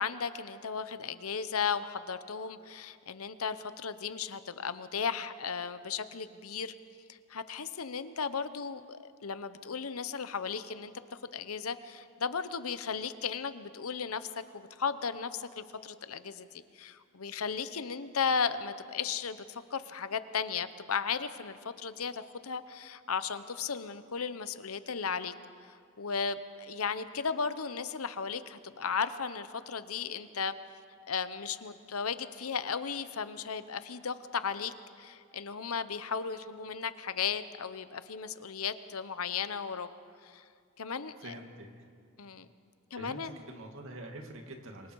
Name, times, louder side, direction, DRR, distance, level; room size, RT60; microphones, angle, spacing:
voice 1, 0.0-6.7 7.1-10.9 11.3-14.3 14.5-25.3 26.0-30.5 31.1-39.9 40.2-40.4 40.8-41.4 42.2-42.5 42.9-43.4, left 6 dB, 85° left, 12 dB, 0.9 m, -35 dB
voice 2, 41.2-41.7 42.9-44.9, right 1 dB, 65° right, 3 dB, 2.4 m, -45 dB
27.0 x 23.5 x 4.7 m, 2.3 s
head